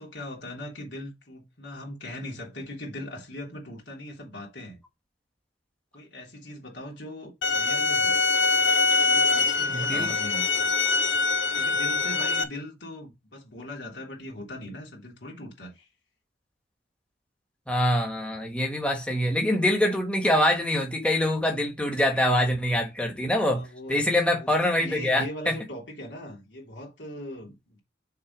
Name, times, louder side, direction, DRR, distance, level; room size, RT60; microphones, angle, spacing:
voice 1, 0.0-4.8 5.9-8.2 9.0-10.7 11.5-15.9 23.5-24.1 24.3-27.8, left 1 dB, 70° left, 3.2 m, -40 dB
sound 1, 7.4-12.4, left 4 dB, 85° left, 0.9 m, -23 dB
voice 2, 9.7-10.1 17.7-25.6, left 1 dB, 5° left, 1.5 m, -25 dB
6.6 x 3.9 x 5.2 m
head